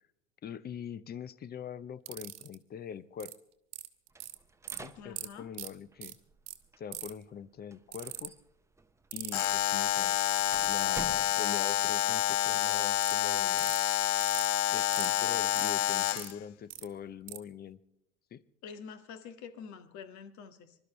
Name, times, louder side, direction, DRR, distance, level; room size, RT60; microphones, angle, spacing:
voice 1, 0.4-3.4 4.8-6.2 6.8-8.4 9.1-10.2 10.6-13.7 14.7-17.8 18.3-18.4, left 8 dB, 25° left, 18 dB, 0.8 m, -43 dB
sound 1, 2.1-2.5 3.2-3.3 3.7-4.3 4.7-4.8 5.2-5.3 5.5-5.7 6.0-6.1 6.5-6.6 6.9-7.2 7.9-8.3 9.1-9.5 10.5-10.9 13.0-13.1 13.6-13.8 14.2-14.5 14.9-15.1 15.6-16.3 16.7-16.8 17.3-17.4, right 15 dB, 45° right, 1.5 m, -40 dB
sound 2, 4.1-11.9, right 3 dB, 10° right, 0.8 m, -51 dB
voice 2, 5.0-5.5 18.6-20.8, left 6 dB, 50° left, 10 dB, 1.8 m, -47 dB
Alarm, 9.3-16.3, left 13 dB, 75° left, 0.6 m, -28 dB
26.0 x 12.5 x 3.2 m, 0.83 s
figure-of-eight pair, 75°, 36 cm